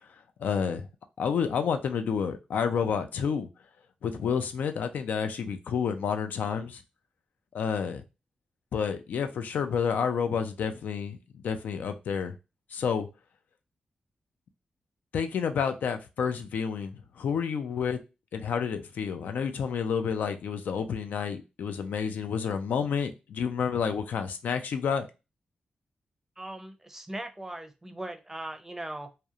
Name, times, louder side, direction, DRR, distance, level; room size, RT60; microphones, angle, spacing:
voice 1, 0.4-0.9 1.2-3.5 4.0-6.8 7.5-8.0 8.7-12.3 12.7-13.1 15.1-18.0 18.3-25.1, left 6 dB, 90° left, 0.3 m, -29 dB
voice 2, 26.4-29.1, right 1 dB, 15° right, 0.5 m, -39 dB
2.8 x 2.0 x 2.3 m
cardioid pair, 75°, 3 cm